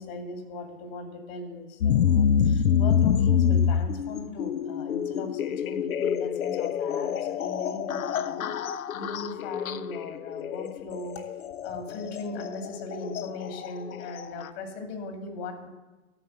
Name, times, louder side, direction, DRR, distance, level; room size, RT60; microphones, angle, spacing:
voice 1, 0.0-11.2 11.6-15.7, left 3 dB, 45° left, 4 dB, 2.4 m, -38 dB
sound 1, 1.8-14.5, left 7 dB, 75° left, 0.6 m, -27 dB
12.5 x 4.9 x 7.6 m, 1.1 s
hypercardioid pair, 120°, 41 cm